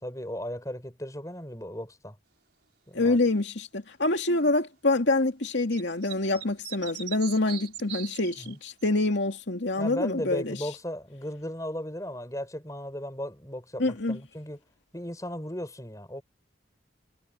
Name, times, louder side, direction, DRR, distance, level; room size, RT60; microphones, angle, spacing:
voice 1, 0.0-2.2 2.9-3.2 8.4-8.6 9.8-14.6 14.9-16.2, equal, 15° left, 5.8 m, -36 dB
voice 2, 2.9-10.6 13.8-14.2, left 2 dB, 75° left, 2.3 m, -26 dB
sound 1, 5.7-8.9, right 10 dB, 60° right, 6.3 m, -40 dB
head